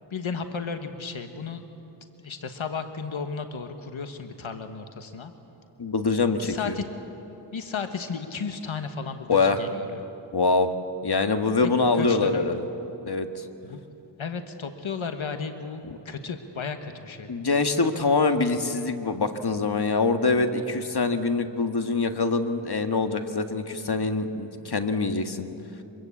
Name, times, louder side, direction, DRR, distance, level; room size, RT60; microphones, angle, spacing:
voice 1, 0.1-1.6 2.2-5.3 6.4-6.8 7.5-10.0 11.6-12.5 13.6-13.8 14.2-17.3, left 5 dB, 85° left, 7 dB, 1.4 m, -34 dB
voice 2, 5.8-6.7 9.3-9.6 10.3-10.7 11.0-12.6 13.0-13.4 15.9-16.0 17.3-25.5, left 3 dB, 55° left, 7 dB, 1.7 m, -24 dB
24.5 x 22.5 x 8.5 m, 2.9 s
wide cardioid pair, 70°, 46 cm